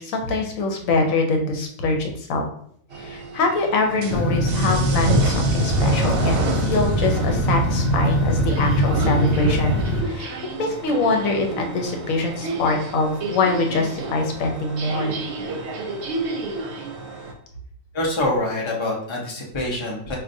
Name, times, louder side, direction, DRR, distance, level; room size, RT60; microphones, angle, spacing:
voice 1, 0.0-2.4 3.0-10.3 10.6-15.2, left 3 dB, 90° left, 3 dB, 1.1 m, -23 dB
sound 1, 2.9-17.3, right 2 dB, 65° right, 0.8 m, -30 dB
sound 2, 4.1-10.0, equal, 50° left, 0.9 m, -21 dB
voice 2, 17.9-20.2, left 1 dB, 25° left, -2 dB, 0.7 m, -25 dB
4.7 x 2.5 x 2.6 m, 0.64 s
omnidirectional pair, 1.4 m